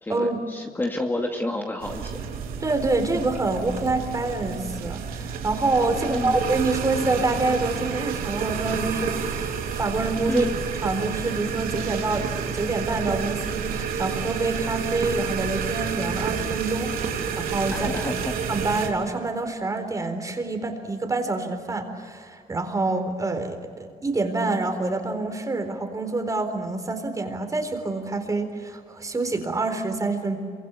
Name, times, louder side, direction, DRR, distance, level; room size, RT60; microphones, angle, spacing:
voice 1, 0.0-2.2 5.9-6.3 10.3-10.5 17.7-18.3, left 2 dB, 15° left, 2 dB, 2.2 m, -29 dB
sound 1, 1.8-18.9, right 6 dB, 80° right, 3.3 m, -30 dB
voice 2, 2.6-10.5 10.8-18.1 18.5-30.4, right 3 dB, 25° right, 6 dB, 4.0 m, -27 dB
27.5 x 24.5 x 8.4 m, 2.1 s
cardioid pair, 120°, 15 cm